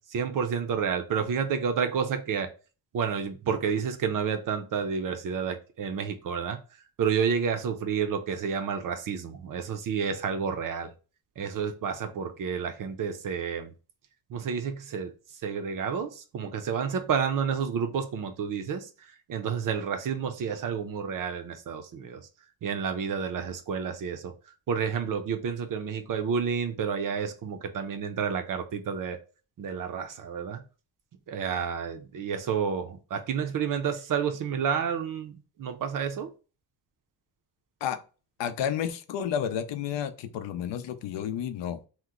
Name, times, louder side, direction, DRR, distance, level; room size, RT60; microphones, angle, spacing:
voice 1, 0.0-2.5 2.9-6.6 7.0-10.9 11.4-13.7 14.3-15.1 15.4-22.2 22.6-24.3 24.7-29.2 29.6-30.6 31.3-36.3, right 6 dB, 50° right, 0.5 m, -30 dB
voice 2, 38.4-41.8, left 9 dB, 75° left, 0.5 m, -31 dB
2.9 x 2.1 x 3.5 m
wide cardioid pair, 160°, 43 cm